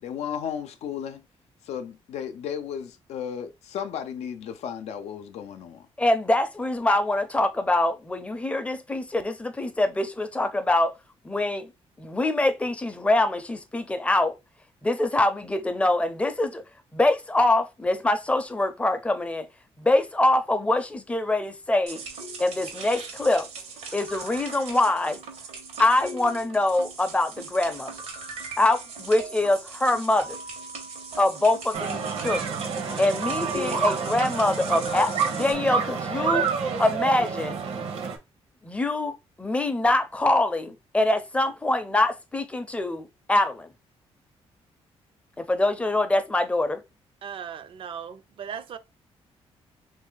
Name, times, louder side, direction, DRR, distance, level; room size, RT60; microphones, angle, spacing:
voice 1, 0.0-1.2 1.6-5.9, left 8 dB, 85° left, 0.5 m, -34 dB
voice 2, 6.0-10.9 11.2-11.7 12.0-14.4 14.8-16.6 16.9-19.5 19.8-22.0 22.4-23.5 23.9-25.2 25.8-27.9 28.6-30.4 31.2-32.6 33.0-36.5 36.8-37.6 38.6-43.7 45.4-46.8, left 2 dB, 10° left, 0.5 m, -24 dB
sound 1, 21.9-35.5, right 3 dB, 85° right, 1.1 m, -38 dB
sound 2, 31.7-38.2, right 5 dB, 70° right, 0.8 m, -28 dB
voice 3, 47.2-48.8, right 8 dB, 55° right, 0.4 m, -37 dB
3.2 x 2.6 x 3.8 m
cardioid pair, 125°, 11 cm